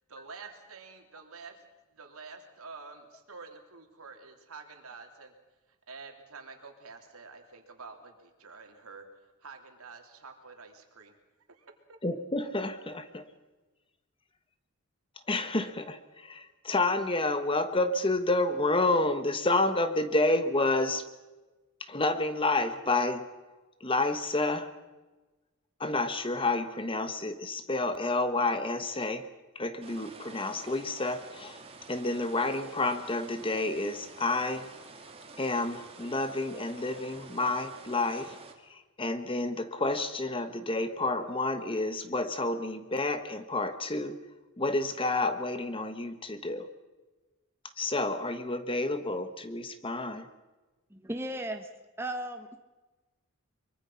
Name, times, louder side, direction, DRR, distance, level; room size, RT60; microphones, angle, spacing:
voice 1, 0.1-1.6 1.9-5.3 5.7-11.2 11.5-11.7, right 4 dB, 75° right, 4 dB, 3.2 m, -48 dB
voice 2, 12.0-13.3 15.3-21.0 21.9-23.3 23.8-24.7 25.8-29.3 29.5-31.6 31.9-34.7 35.4-38.4 38.7-44.2 44.6-46.7 47.8-50.3, left 2 dB, 25° left, 10 dB, 1.2 m, -29 dB
sound 1, 29.8-38.5, right 3 dB, 25° right, 2.3 m, -49 dB
voice 3, 50.9-51.7 52.0-52.6, right 1 dB, 10° right, 5 dB, 1.1 m, -36 dB
24.0 x 23.5 x 5.7 m, 1.2 s
head